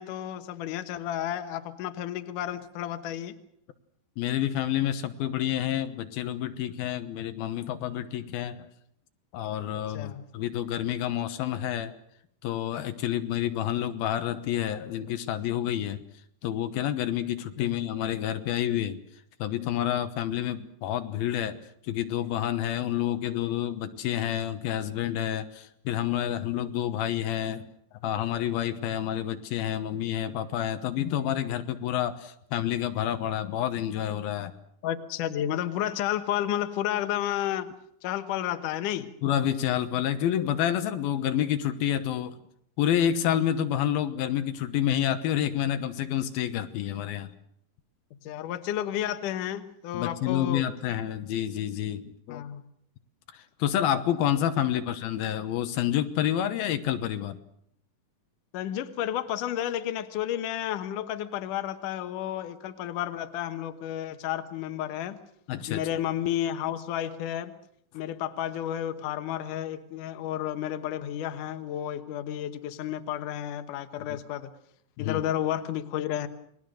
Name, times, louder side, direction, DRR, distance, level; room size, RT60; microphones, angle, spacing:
voice 1, 0.0-3.4 9.9-10.2 17.6-17.8 34.8-37.7 38.0-39.1 48.2-50.6 52.3-52.6 54.7-54.8 58.5-65.2 65.7-67.5 67.9-74.5 75.0-76.3, left 11 dB, 65° left, 9 dB, 2.5 m, -31 dB
voice 2, 4.2-8.7 9.3-11.9 12.4-16.0 16.4-19.0 19.4-21.6 21.9-27.7 28.0-34.5 39.2-42.4 42.8-47.3 49.9-52.4 53.3-57.4 65.5-65.8 74.1-74.2 75.0-75.2, left 11 dB, 85° left, 9 dB, 3.0 m, -29 dB
29.0 x 21.0 x 6.5 m, 0.71 s
omnidirectional pair, 4.2 m